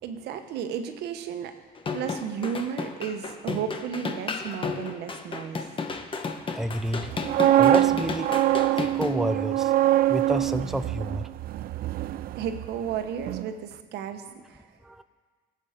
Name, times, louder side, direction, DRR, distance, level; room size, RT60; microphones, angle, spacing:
voice 1, 0.0-1.5 1.9-5.6 12.4-14.6, right 8 dB, 80° right, 7 dB, 1.2 m, -33 dB
sound 1, 1.8-9.1, left 4 dB, 30° left, 1.1 m, -33 dB
voice 2, 6.5-7.1 7.5-9.7 10.1-11.3 14.8-15.0, right 1 dB, ahead, 10 dB, 0.5 m, -29 dB
sound 2, 7.0-13.0 13.2-13.5, right 13 dB, 60° right, 0.4 m, -24 dB
19.0 x 8.1 x 5.1 m, 1.5 s
cardioid pair, 110°, 17 cm